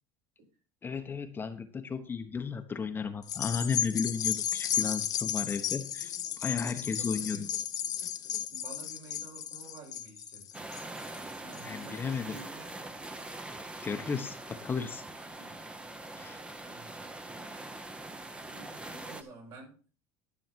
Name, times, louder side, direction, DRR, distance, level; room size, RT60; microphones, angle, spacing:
voice 1, 0.8-7.5 11.6-12.4 13.8-15.0 16.1-16.4, left 5 dB, 25° left, 7 dB, 1.0 m, -34 dB
sound 1, 3.2-11.9 12.4-12.5, left 10 dB, 45° left, 1.1 m, -34 dB
voice 2, 6.8-7.5 8.5-10.6 11.4-12.8 15.4-15.6 16.1-16.4 16.7-16.9 17.4-17.7 18.3-19.9, right 3 dB, 65° right, -1 dB, 6.2 m, -51 dB
sound 2, 10.5-19.2, right 2 dB, 10° right, 0.9 m, -43 dB
12.5 x 6.4 x 4.5 m, 0.38 s
supercardioid pair, 120°, 9 cm